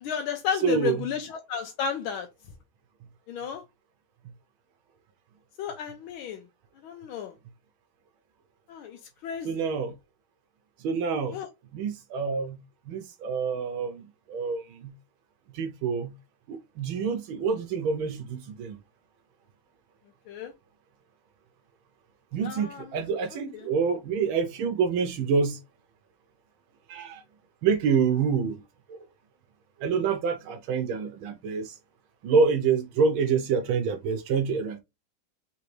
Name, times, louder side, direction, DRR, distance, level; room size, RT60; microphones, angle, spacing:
voice 1, 0.0-2.3 3.3-3.6 5.6-6.4 6.8-7.3 8.7-9.0 9.2-9.5 11.3-11.5 20.3-20.5 22.4-22.8, left 7 dB, 85° left, 1.5 m, -32 dB
voice 2, 0.6-1.1 9.4-9.9 10.8-11.4 11.7-12.6 12.9-14.0 14.3-14.9 15.5-16.1 16.5-18.8 22.3-25.6 26.9-27.2 27.6-28.6 28.9-29.0 29.8-31.7 32.2-34.8, right 5 dB, 80° right, 1.5 m, -27 dB
3.9 x 3.4 x 3.1 m
omnidirectional pair, 2.2 m